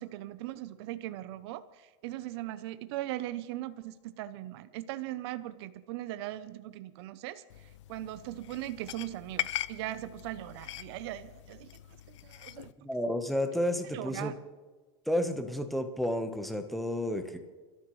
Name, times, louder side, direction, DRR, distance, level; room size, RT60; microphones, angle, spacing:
voice 1, 0.0-11.7 12.1-12.7 13.9-14.4, right 14 dB, 60° right, 13 dB, 0.7 m, -39 dB
sound 1, 7.5-12.7, left 13 dB, 80° left, 0.7 m, -41 dB
voice 2, 12.8-14.3 15.1-17.4, left 1 dB, ahead, 6 dB, 1.1 m, -31 dB
30.0 x 12.5 x 3.2 m, 1.3 s
supercardioid pair, 145°, 15 cm